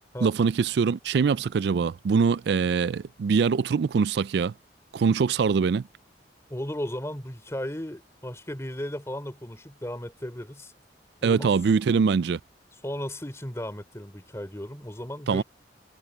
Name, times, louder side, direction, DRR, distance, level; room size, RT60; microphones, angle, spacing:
voice 1, 0.2-4.5 4.9-5.9 11.2-12.4 15.3-15.4, right 5 dB, 65° right, 0.3 m, -23 dB
voice 2, 6.5-10.7 11.2-11.5 12.8-15.4, left 1 dB, 15° left, 3.2 m, -35 dB
head